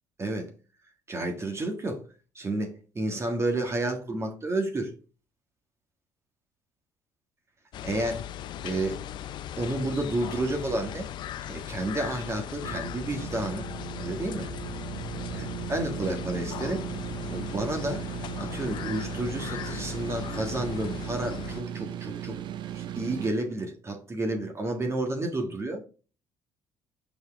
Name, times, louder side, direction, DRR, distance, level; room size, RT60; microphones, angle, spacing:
voice 1, 0.2-0.5 1.1-2.0 2.3-4.9 7.8-8.2 8.6-9.1 9.6-11.1 11.5-13.7 14.0-14.5 15.3-16.9 17.3-18.1 18.4-22.4 22.7-25.8, right 2 dB, 30° right, 1.5 m, -31 dB
sound 1, 7.7-21.6, left 11 dB, 60° left, 0.5 m, -38 dB
sound 2, 12.6-23.3, right 11 dB, 65° right, 0.6 m, -37 dB
5.3 x 4.9 x 3.6 m
supercardioid pair, 65°, 9 cm